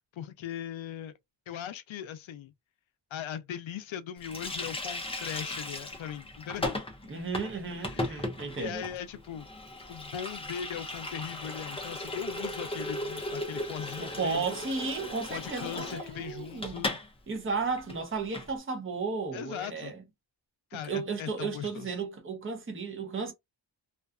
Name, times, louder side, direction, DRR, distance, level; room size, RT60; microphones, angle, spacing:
voice 1, 0.1-1.1 1.5-2.5 3.1-6.8 7.8-8.3 8.6-9.5 9.9-14.4 15.3-17.0 19.3-19.9 20.7-21.9, left 9 dB, 80° left, 0.6 m, -39 dB
Water tap faucet, 4.2-17.1 17.3-17.5 17.8-18.5, left 2 dB, 15° left, 0.5 m, -37 dB
voice 2, 7.1-8.8 14.0-16.9 17.3-20.0 20.8-23.3, right 4 dB, 25° right, 0.7 m, -34 dB
2.5 x 2.3 x 2.4 m
wide cardioid pair, 130°, 46 cm